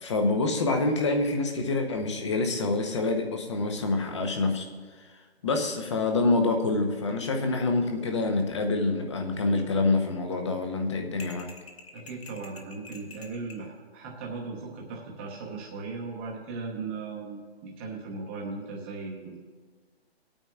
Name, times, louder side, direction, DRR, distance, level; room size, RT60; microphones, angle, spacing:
voice 1, 0.0-4.7 5.4-11.5, left 3 dB, 25° left, 4 dB, 0.8 m, -26 dB
sound 1, 11.2-13.7, left 4 dB, 70° left, 1.3 m, -47 dB
voice 2, 11.9-19.4, right 4 dB, 10° right, -2 dB, 0.9 m, -37 dB
21.0 x 8.9 x 2.4 m, 1.5 s
hypercardioid pair, 165°, 32 cm